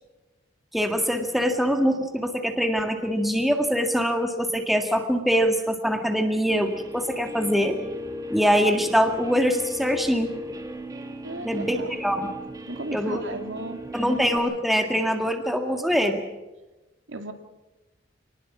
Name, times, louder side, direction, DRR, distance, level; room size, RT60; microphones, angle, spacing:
voice 1, 0.7-7.8 8.3-10.3 11.4-12.3 12.9-13.2 13.9-16.2, equal, ahead, 5 dB, 1.8 m, -23 dB
Guitar, 6.5-14.4, left 1 dB, 20° right, 2.5 m, -37 dB
voice 2, 11.2-12.0 12.7-13.8 17.1-17.3, right 2 dB, 85° right, 6 dB, 2.2 m, -35 dB
25.5 x 19.5 x 6.1 m, 1.1 s
head